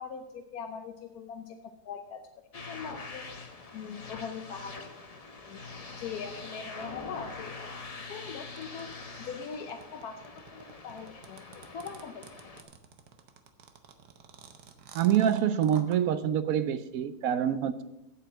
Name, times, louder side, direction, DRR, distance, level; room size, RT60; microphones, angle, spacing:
voice 1, 0.0-1.6 1.8-4.9 5.5-5.6 6.0-7.6 7.9-12.5, left 6 dB, 70° left, 3 dB, 1.2 m, -42 dB
sound 1, 2.5-12.6, left 3 dB, 30° left, 0.8 m, -44 dB
sound 2, 8.6-16.0, right 7 dB, 85° right, 1.5 m, -50 dB
voice 2, 14.9-17.8, right 10 dB, 65° right, 13 dB, 1.0 m, -26 dB
8.2 x 7.5 x 7.2 m, 0.92 s
omnidirectional pair, 1.7 m